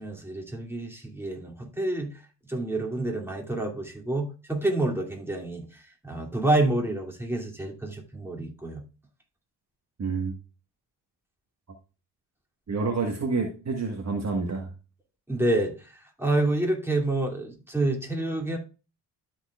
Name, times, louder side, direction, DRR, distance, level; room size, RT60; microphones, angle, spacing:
voice 1, 0.0-2.1 2.5-8.8 15.3-18.6, right 2 dB, 5° right, 2.4 m, -28 dB
voice 2, 10.0-10.3 12.7-14.7, right 4 dB, 30° right, 1.4 m, -28 dB
13.0 x 4.5 x 2.3 m
hypercardioid pair, 50°, 50 cm